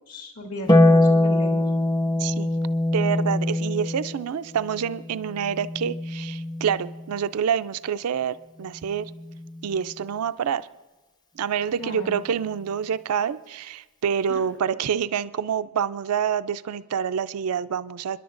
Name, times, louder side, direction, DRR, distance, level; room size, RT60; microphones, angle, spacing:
voice 1, 0.1-1.7 11.8-12.2 14.3-14.4, left 1 dB, 70° left, 0 dB, 2.4 m, -36 dB
Harp, 0.7-7.2 8.8-9.8, left 1 dB, 20° left, 0.6 m, -23 dB
voice 2, 2.9-9.1 9.6-10.7 11.4-18.2, right 7 dB, 75° right, 13 dB, 0.4 m, -27 dB
29.5 x 10.5 x 2.5 m, 1.2 s
head